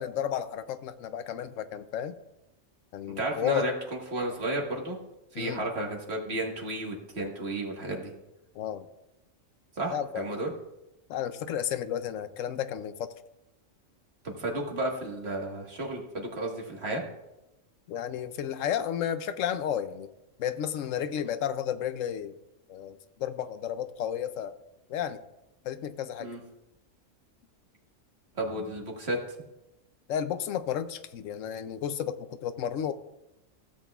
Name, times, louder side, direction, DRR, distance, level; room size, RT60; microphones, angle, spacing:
voice 1, 0.0-2.1 2.9-3.7 5.3-5.6 8.6-8.9 9.9-10.3 11.1-13.1 17.9-20.1 20.4-22.3 22.7-24.5 24.9-25.2 25.6-26.3 30.1-32.9, left 9 dB, 80° left, 12 dB, 0.9 m, -32 dB
voice 2, 3.2-3.7 4.1-5.0 5.3-8.1 9.8-10.5 14.2-17.0 26.2-26.4 28.4-29.2, right 1 dB, 55° right, 0 dB, 1.8 m, -32 dB
15.5 x 7.8 x 2.3 m, 0.93 s
omnidirectional pair, 1.3 m